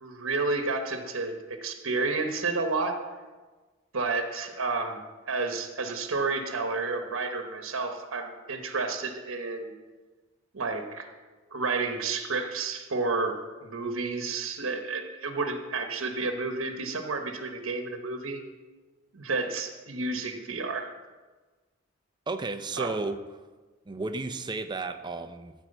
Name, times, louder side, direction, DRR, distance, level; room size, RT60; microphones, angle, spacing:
voice 1, 0.0-2.9 3.9-5.0 5.3-9.7 10.5-11.1 11.5-13.3 13.6-18.4 19.1-20.9 22.8-22.9, right 3 dB, 85° right, 5 dB, 1.1 m, -31 dB
voice 2, 22.3-23.2 23.9-25.5, right 3 dB, 20° right, 8 dB, 0.6 m, -33 dB
13.5 x 4.6 x 7.9 m, 1.3 s
head